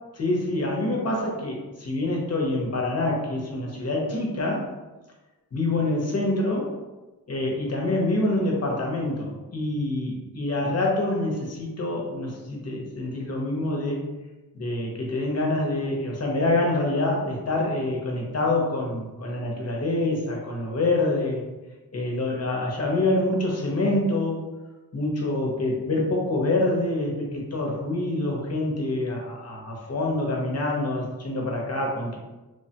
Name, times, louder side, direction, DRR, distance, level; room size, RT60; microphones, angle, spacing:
voice 1, 0.2-4.7 5.5-6.8 7.3-14.0 14.5-21.4 21.9-24.5 24.9-32.2, left 2 dB, 40° left, -2 dB, 0.7 m, -26 dB
3.1 x 2.1 x 2.7 m, 1.1 s
wide cardioid pair, 125°, 39 cm